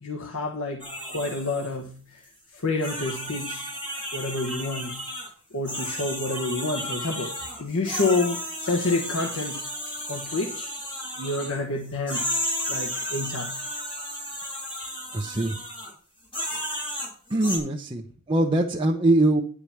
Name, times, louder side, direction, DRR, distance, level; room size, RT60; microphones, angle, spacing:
voice 1, 0.0-2.2 2.5-3.7 4.1-5.0 5.5-10.7 11.2-12.3 12.7-13.6, left 2 dB, 65° left, 3 dB, 1.2 m, -29 dB
sound 1, 0.8-1.7 2.2-2.3 2.8-5.3 5.7-11.6 12.1-15.9 16.3-17.6, equal, 25° left, 4.9 m, -33 dB
voice 2, 15.1-15.5 17.3-19.4, right 2 dB, 25° right, -1 dB, 0.8 m, -22 dB
10.5 x 4.9 x 7.1 m, 0.43 s
head